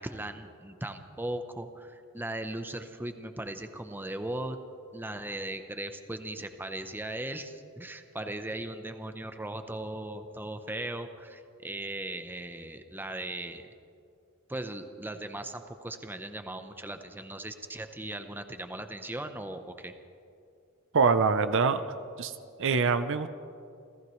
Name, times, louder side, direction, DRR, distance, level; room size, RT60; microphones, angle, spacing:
voice 1, 0.0-4.6 4.9-13.7 14.5-19.9, right 1 dB, 10° right, 7 dB, 0.8 m, -38 dB
voice 2, 20.9-21.8 22.2-22.3 22.6-23.3, right 5 dB, 60° right, 11 dB, 0.7 m, -24 dB
29.5 x 15.0 x 3.2 m, 2.5 s
head